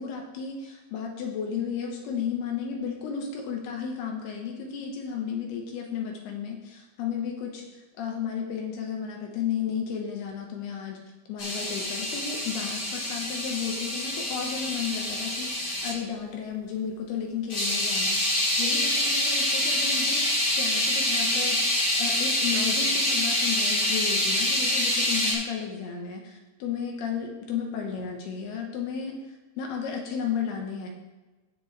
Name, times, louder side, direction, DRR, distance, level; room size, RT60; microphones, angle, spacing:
voice 1, 0.0-7.7 8.0-11.0 11.3-29.2 29.6-30.9, left 7 dB, 75° left, 1 dB, 2.8 m, -33 dB
sound 1, 11.4-15.9 17.5-25.3, left 1 dB, 30° left, 2.3 m, -26 dB
17.0 x 6.0 x 3.1 m, 1.1 s
omnidirectional pair, 5.2 m